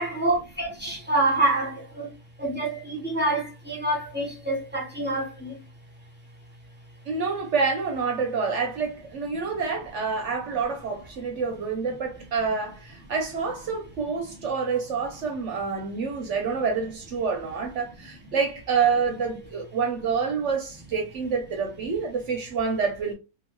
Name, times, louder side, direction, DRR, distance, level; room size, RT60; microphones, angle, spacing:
voice 1, 0.0-2.1 2.4-5.6, right 2 dB, 10° right, 0.8 m, -26 dB
voice 2, 7.1-23.1, right 5 dB, 65° right, 0.8 m, -27 dB
2.7 x 2.6 x 3.0 m
omnidirectional pair, 1.7 m